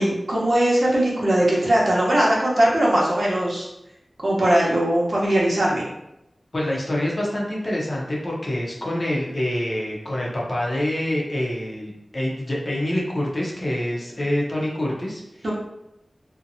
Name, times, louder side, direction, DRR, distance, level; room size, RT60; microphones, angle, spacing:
voice 1, 0.0-3.7 4.2-5.8 15.4-15.5, right 1 dB, 65° right, -5 dB, 0.8 m, -20 dB
voice 2, 6.5-15.5, left 1 dB, 50° left, -3 dB, 0.6 m, -26 dB
2.7 x 2.1 x 2.6 m, 0.85 s
wide cardioid pair, 60°, 0 cm